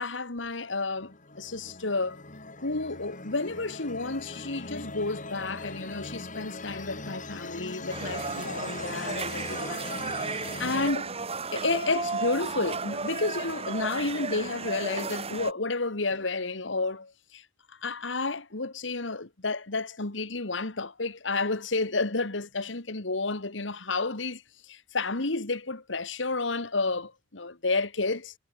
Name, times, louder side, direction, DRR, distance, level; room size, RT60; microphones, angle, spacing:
voice 1, 0.0-2.2 2.6-9.8 10.1-11.2 11.5-17.1 17.8-28.3, left 3 dB, 80° left, 2.0 m, -31 dB
sound 1, 0.9-10.9, left 3 dB, 45° left, 5.7 m, -40 dB
sound 2, 7.9-15.5, right 4 dB, 35° right, 2.0 m, -34 dB
head